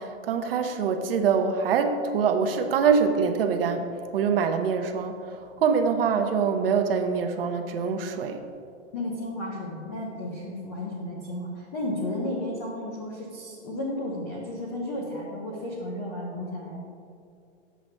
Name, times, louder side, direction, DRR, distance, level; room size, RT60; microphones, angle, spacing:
voice 1, 0.0-8.4, right 6 dB, 50° right, 6 dB, 0.7 m, -24 dB
voice 2, 8.9-16.8, left 1 dB, 15° left, -3 dB, 0.4 m, -33 dB
9.1 x 7.6 x 3.2 m, 2.4 s
hypercardioid pair, 165°, 36 cm